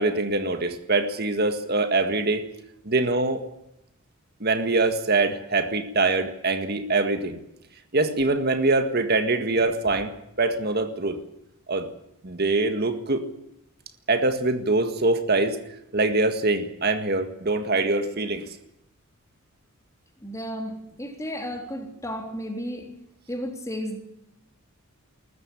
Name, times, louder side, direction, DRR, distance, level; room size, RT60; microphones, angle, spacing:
voice 1, 0.0-2.4 2.9-3.4 4.4-7.4 7.9-10.1 10.4-11.2 11.7-11.9 12.2-13.3 14.1-15.6 15.9-18.4, right 3 dB, 45° right, 8 dB, 1.8 m, -23 dB
voice 2, 20.2-22.9 23.3-24.0, equal, 15° left, 4 dB, 3.5 m, -33 dB
21.0 x 14.0 x 9.9 m, 0.82 s
head